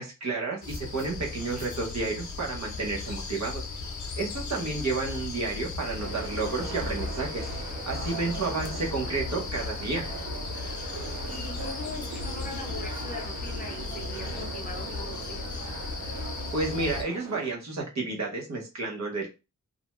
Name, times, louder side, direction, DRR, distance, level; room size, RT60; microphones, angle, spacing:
voice 1, 0.0-3.7 4.2-7.5 7.9-10.1 16.5-19.3, right 3 dB, 55° right, -1 dB, 1.0 m, -31 dB
sound 1, 0.6-17.0, left 4 dB, 60° left, 0.6 m, -36 dB
voice 2, 4.3-4.8 11.2-15.5, left 2 dB, 25° left, 1 dB, 0.7 m, -41 dB
sound 2, 6.0-17.5, right 5 dB, 90° right, 0.6 m, -40 dB
2.6 x 2.2 x 3.0 m, 0.28 s
wide cardioid pair, 145°, 32 cm